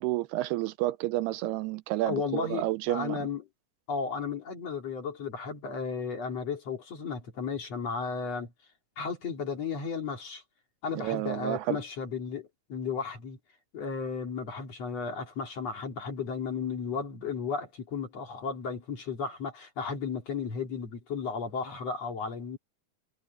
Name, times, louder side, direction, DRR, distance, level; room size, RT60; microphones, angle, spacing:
voice 1, 0.0-3.3 11.0-11.8, right 16 dB, 85° right, 2.6 m, -30 dB
voice 2, 2.1-3.4 3.9-8.5 9.0-10.4 10.8-13.4 13.7-22.6, left 5 dB, 40° left, 3.6 m, -34 dB
omnidirectional pair, 4.7 m